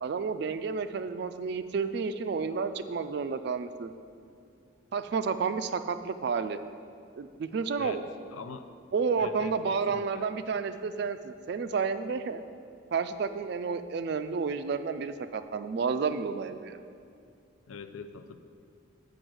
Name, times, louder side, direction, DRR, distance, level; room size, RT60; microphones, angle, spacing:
voice 1, 0.0-3.9 4.9-6.6 7.2-8.0 8.9-12.4 12.9-16.8, right 5 dB, 55° right, 11 dB, 0.3 m, -31 dB
voice 2, 8.3-8.7 9.2-10.3 17.7-18.4, left 5 dB, 90° left, 9 dB, 0.5 m, -43 dB
7.9 x 5.0 x 6.2 m, 2.4 s
head